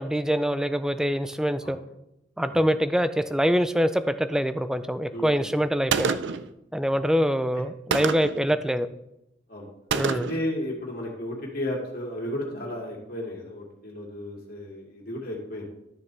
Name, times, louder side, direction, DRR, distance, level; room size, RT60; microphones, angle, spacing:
voice 1, 0.0-1.8 2.4-6.2 6.7-8.9 9.9-10.3, equal, 5° right, 11 dB, 0.4 m, -24 dB
voice 2, 5.1-5.6 6.9-7.0 7.5-7.6 9.5-9.7 10.1-15.7, left 1 dB, 50° left, -1 dB, 2.3 m, -34 dB
Gunshot gunfire, 5.9-6.5 7.9-8.4 9.9-10.5, right 6 dB, 70° right, 0.5 m, -27 dB
12.0 x 6.7 x 3.4 m, 0.85 s
head